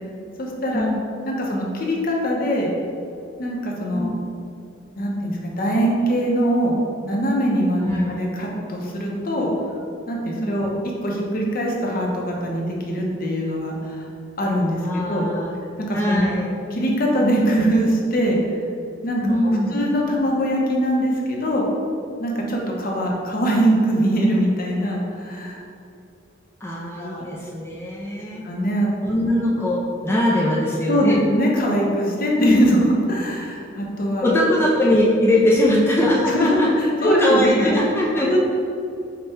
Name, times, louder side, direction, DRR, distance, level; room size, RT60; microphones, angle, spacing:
voice 1, 0.4-0.9 1.3-2.7 3.4-4.1 5.0-6.8 7.0-9.5 10.1-10.7 11.0-14.1 14.4-14.8 15.1-15.3 15.8-16.4 16.7-18.4 19.0-19.3 19.7-21.6 22.2-25.6 27.0-27.2 28.4-28.9 30.9-34.3 35.6-35.8 36.3-37.7 38.2-38.4, equal, 50° left, -2 dB, 0.7 m, -22 dB
voice 2, 7.8-8.1 10.4-10.6 14.8-15.6 15.9-16.5 19.2-19.8 26.6-28.4 29.0-31.2 32.4-32.7 34.2-36.7 37.0-38.4, left 1 dB, 10° left, -5 dB, 0.4 m, -21 dB
5.2 x 2.2 x 4.1 m, 2.6 s
head